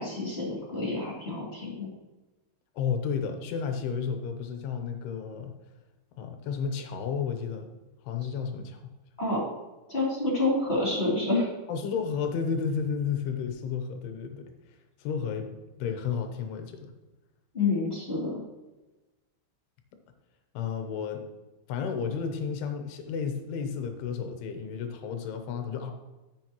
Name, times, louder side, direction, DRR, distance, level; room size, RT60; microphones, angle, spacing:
voice 1, 0.0-1.9 9.2-9.4 9.9-11.5 17.5-18.3, left 2 dB, 15° left, -5 dB, 2.4 m, -28 dB
voice 2, 2.8-5.5 6.2-7.7 8.0-8.8 11.7-14.5 15.0-15.5 15.8-16.9 20.5-21.2 21.7-25.9, left 6 dB, 75° left, 5 dB, 2.6 m, -32 dB
14.0 x 6.5 x 3.0 m, 1.1 s
omnidirectional pair, 5.5 m